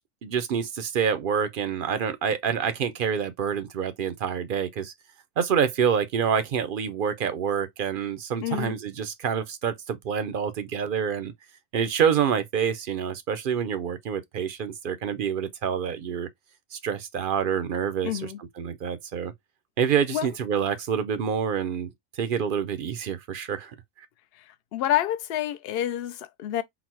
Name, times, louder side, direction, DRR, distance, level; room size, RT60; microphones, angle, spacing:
voice 1, 0.2-4.9 5.4-11.3 11.7-16.3 16.7-19.3 19.8-21.9 22.2-23.7, right 7 dB, 60° right, 0.6 m, -27 dB
voice 2, 8.4-8.8 18.0-18.4 20.1-20.3 24.7-26.6, left 12 dB, 60° left, 0.6 m, -28 dB
4.0 x 2.1 x 4.3 m
omnidirectional pair, 1.4 m